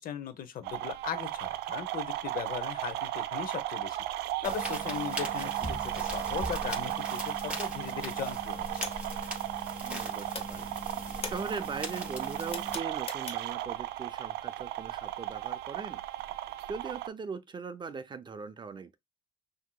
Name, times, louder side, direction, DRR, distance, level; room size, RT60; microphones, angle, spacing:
voice 1, 0.0-4.0 4.4-8.9, left 9 dB, 55° left, 0.8 m, -38 dB
sound 1, 0.6-17.1, right 14 dB, 85° right, 0.5 m, -36 dB
sound 2, 4.4-12.8, right 1 dB, 5° right, 3.1 m, -40 dB
voice 2, 5.2-5.5 9.8-16.0 16.7-19.0, right 5 dB, 25° right, 0.4 m, -40 dB
sound 3, 8.8-10.0 10.3-13.7, left 5 dB, 35° left, 1.1 m, -42 dB
6.0 x 2.8 x 2.3 m
cardioid pair, 110°, 17 cm